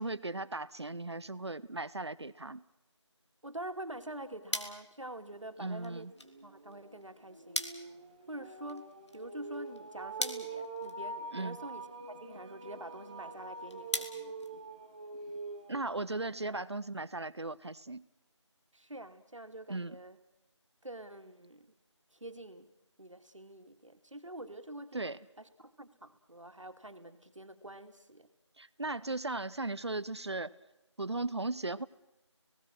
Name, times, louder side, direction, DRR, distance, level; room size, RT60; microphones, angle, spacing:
voice 1, 0.0-2.6 5.6-6.1 11.3-11.6 15.7-18.0 19.7-19.9 24.9-25.2 28.6-30.5 31.0-31.9, right 2 dB, 60° right, 17 dB, 0.8 m, -37 dB
voice 2, 3.4-6.1 6.4-7.9 8.3-14.4 18.7-20.2 20.8-21.7 22.1-22.7 23.0-25.0 25.4-28.3, right 1 dB, 85° right, 7 dB, 2.4 m, -46 dB
sound 1, 3.8-15.2, left 1 dB, 65° left, 2.5 m, -44 dB
sound 2, 5.3-5.4 5.8-16.5, right 3 dB, 15° right, 1.5 m, -45 dB
29.5 x 18.0 x 6.1 m, 0.89 s
figure-of-eight pair, 170°, 16 cm